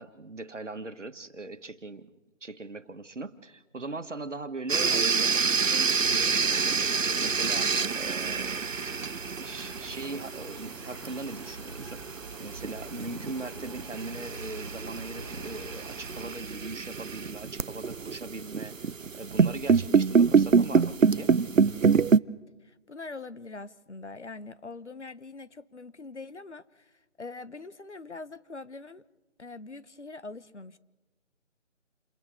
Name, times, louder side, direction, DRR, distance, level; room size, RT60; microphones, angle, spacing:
voice 1, 0.0-2.1 2.4-12.1 12.4-18.8 19.1-21.4, right 2 dB, 70° right, 10 dB, 1.7 m, -40 dB
sound 1, 4.7-22.2, right 5 dB, 90° right, 0.8 m, -27 dB
sound 2, 5.7-16.4, right 2 dB, 20° right, 1.5 m, -46 dB
voice 2, 22.6-29.0 29.4-30.8, left 3 dB, 60° left, 15 dB, 1.2 m, -43 dB
29.0 x 29.0 x 3.8 m, 1.2 s
figure-of-eight pair, 175°, 38 cm